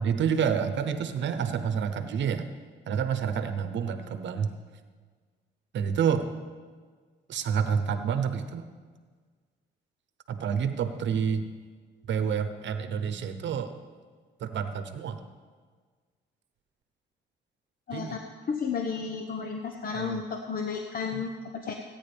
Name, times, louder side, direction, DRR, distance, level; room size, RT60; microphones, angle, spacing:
voice 1, 0.0-2.5 2.9-4.6 5.7-6.3 7.3-8.7 10.3-11.4 12.1-13.7 14.4-15.2 17.9-18.2 19.9-20.2 21.1-21.2, right 7 dB, 65° right, 9 dB, 0.9 m, -28 dB
voice 2, 17.9-18.2 18.5-21.7, left 5 dB, 45° left, 3 dB, 1.0 m, -32 dB
18.5 x 9.3 x 3.5 m, 1.5 s
cardioid pair, 90°, 20 cm